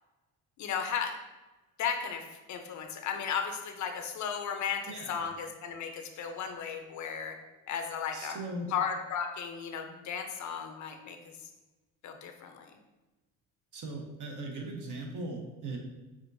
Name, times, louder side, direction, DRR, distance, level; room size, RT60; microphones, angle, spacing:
voice 1, 0.6-1.2 1.8-2.2 2.5-7.4 7.7-8.4 8.7-11.2 12.0-12.7, left 7 dB, 50° left, 5 dB, 0.6 m, -35 dB
voice 2, 4.9-5.3 8.1-8.7 13.7-15.8, right 2 dB, 55° right, 1 dB, 1.0 m, -39 dB
6.1 x 2.5 x 2.6 m, 1.1 s
cardioid pair, 100°, 36 cm